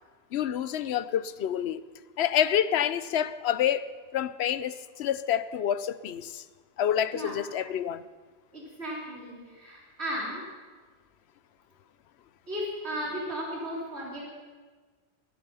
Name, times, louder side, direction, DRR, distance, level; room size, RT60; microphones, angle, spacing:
voice 1, 0.3-1.8 2.2-6.4 6.8-8.0, left 10 dB, 65° left, 0.8 m, -28 dB
voice 2, 8.5-10.4 12.5-14.2, equal, 60° right, 4.0 m, -35 dB
17.0 x 14.5 x 5.6 m
omnidirectional pair, 1.2 m